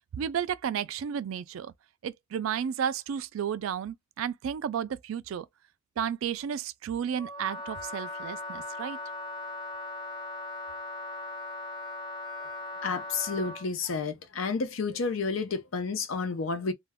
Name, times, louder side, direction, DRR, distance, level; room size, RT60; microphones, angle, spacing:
voice 1, 0.1-1.7 2.0-5.5 6.0-9.0, right 8 dB, 85° right, 0.3 m, -32 dB
Wind instrument woodwind instrument, 7.2-13.7, left 2 dB, 20° left, 0.5 m, -39 dB
voice 2, 12.8-16.7, left 4 dB, 80° left, 0.6 m, -31 dB
2.2 x 2.2 x 3.4 m
head